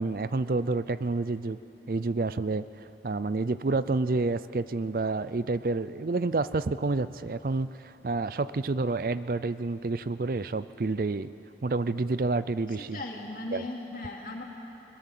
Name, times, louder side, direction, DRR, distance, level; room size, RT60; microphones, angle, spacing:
voice 1, 0.0-1.6 1.9-2.6 3.0-11.3 11.6-13.0 13.5-13.6, right 3 dB, 50° right, 15 dB, 0.5 m, -29 dB
voice 2, 12.7-14.4, left 2 dB, 50° left, 0 dB, 2.8 m, -38 dB
22.0 x 21.0 x 7.5 m, 2.9 s
head